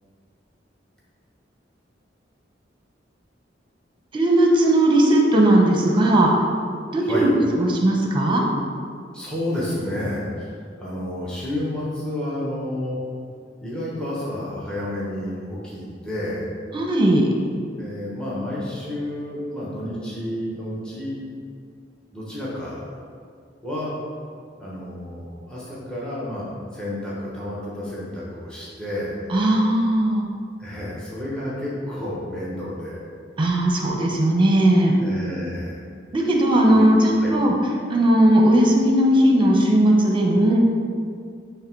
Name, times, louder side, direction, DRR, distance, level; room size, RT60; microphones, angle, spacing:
voice 1, 4.1-6.3 6.9-8.5 16.7-17.3 29.3-30.2 33.4-35.0 36.1-37.5 37.9-40.6, right 1 dB, 25° right, 0 dB, 0.9 m, -17 dB
voice 2, 9.1-10.5 10.8-13.0 13.6-16.5 17.8-21.2 22.1-22.8 23.6-23.9 24.6-26.4 26.7-29.1 30.6-33.1 35.0-35.8 36.7-36.8 37.2-37.4, left 1 dB, 5° left, -7 dB, 1.3 m, -30 dB
8.5 x 3.4 x 4.6 m, 2.2 s
head